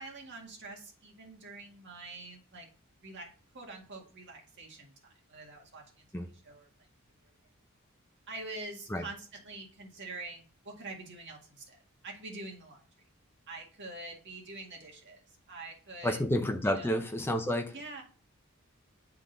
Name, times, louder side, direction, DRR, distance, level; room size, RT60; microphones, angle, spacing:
voice 1, 0.0-2.7 3.0-6.0 6.4-6.7 8.3-12.8 13.5-16.2 16.6-17.0 17.7-18.0, right 2 dB, 55° right, 0 dB, 1.8 m, -45 dB
voice 2, 16.0-17.7, equal, 10° left, 4 dB, 0.6 m, -30 dB
9.5 x 3.8 x 3.9 m, 0.39 s
head